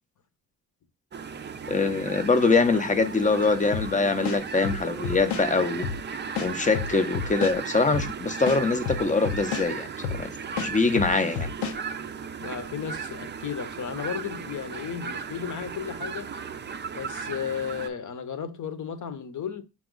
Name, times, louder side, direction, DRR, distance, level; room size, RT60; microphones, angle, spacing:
sound 1, 1.1-17.9, right 6 dB, 30° right, 0.4 m, -36 dB
voice 1, 1.7-5.9 6.4-10.3 10.6-11.5, left 4 dB, 20° left, 0.6 m, -24 dB
sound 2, 3.7-3.9 4.2-5.5 5.8-6.0 6.4-7.6 7.9-8.1 8.5-9.7 10.0-10.2 10.6-11.8, left 6 dB, 85° left, 0.7 m, -30 dB
voice 2, 12.4-16.3 16.9-19.6, left 7 dB, 50° left, 0.8 m, -34 dB
6.0 x 2.3 x 3.7 m
cardioid pair, 100°, 39 cm